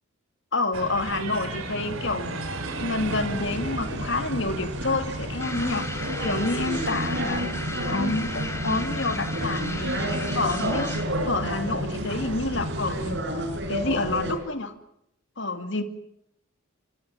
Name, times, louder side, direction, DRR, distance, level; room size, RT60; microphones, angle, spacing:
voice 1, 0.5-2.4 2.8-5.9 6.2-7.5 7.9-9.9 10.3-10.9 11.3-13.2 13.7-14.7 15.4-15.8, left 2 dB, 60° left, 8 dB, 2.5 m, -28 dB
sound 1, 0.7-13.1, right 1 dB, 75° right, 4.3 m, -35 dB
sound 2, 3.0-14.3, equal, 55° right, 6.3 m, -31 dB
sound 3, 5.4-11.2, left 2 dB, 15° left, 3.8 m, -36 dB
26.0 x 25.0 x 7.5 m, 0.75 s
head